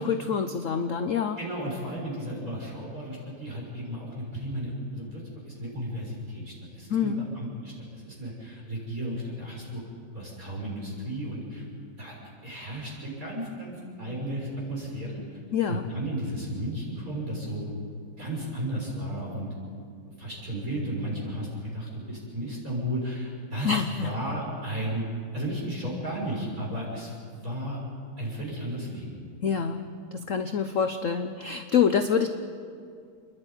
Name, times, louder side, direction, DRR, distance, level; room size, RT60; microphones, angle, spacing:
voice 1, 0.0-1.4 6.9-7.2 15.5-15.9 23.6-24.1 29.4-29.8 30.1-32.3, left 7 dB, 55° left, 8 dB, 0.9 m, -26 dB
voice 2, 1.4-9.8 10.1-11.6 12.0-12.1 12.4-15.4 15.7-17.6 18.2-19.5 20.2-25.0 25.3-27.8 28.2-29.2, equal, 40° right, -3 dB, 6.7 m, -34 dB
28.5 x 11.0 x 9.8 m, 2.3 s
omnidirectional pair, 2.2 m